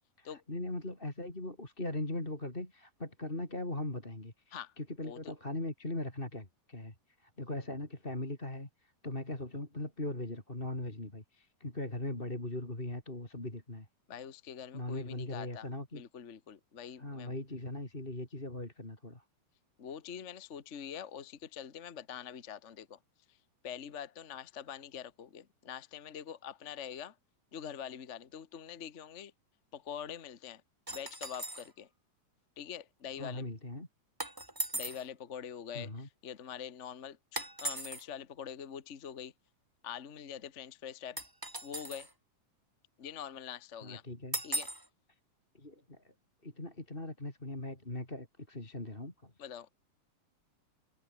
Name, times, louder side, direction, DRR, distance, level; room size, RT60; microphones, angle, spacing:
voice 1, 0.2-13.9 14.7-16.0 17.0-19.2 33.2-33.9 35.7-36.1 43.8-44.4 45.5-46.1 46.4-49.3, left 1 dB, 15° left, 4.6 m, -40 dB
voice 2, 14.1-15.7 15.9-17.3 19.8-23.0 23.6-27.1 27.5-29.3 29.7-30.6 30.9-31.9 32.6-33.4 34.7-39.3 39.8-41.2 41.6-42.1 43.0-44.0 44.4-44.7 49.4-49.7, left 8 dB, 65° left, 0.7 m, -44 dB
sound 1, 30.9-31.7 34.2-35.1 37.3-38.0 41.2-42.1 44.3-44.9, right 1 dB, 10° right, 1.7 m, -38 dB
omnidirectional pair, 3.8 m